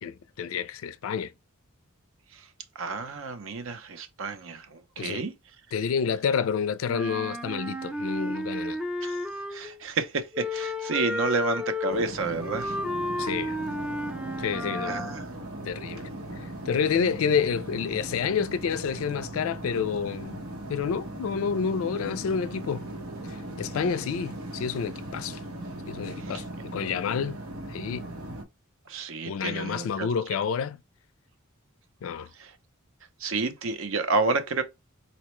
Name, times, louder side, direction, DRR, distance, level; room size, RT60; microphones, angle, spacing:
voice 1, 0.0-1.3 5.0-5.2 5.7-8.8 13.2-13.6 14.4-15.0 15.6-16.1 16.4-20.4 20.7-22.9 23.3-25.4 25.9-27.4 27.7-28.1 29.3-30.8 32.0-32.3, left 6 dB, 70° left, 0.3 m, -29 dB
voice 2, 2.8-5.3 9.0-9.2 9.5-12.8 14.8-15.3 26.2-26.4 28.9-30.1 32.4-32.5 33.2-34.6, right 3 dB, 65° right, 0.6 m, -30 dB
Wind instrument woodwind instrument, 6.9-9.8 10.3-15.2, left 1 dB, 5° right, 0.3 m, -32 dB
sound 1, 11.9-28.4, right 1 dB, 85° right, 1.0 m, -38 dB
4.1 x 2.1 x 3.0 m
head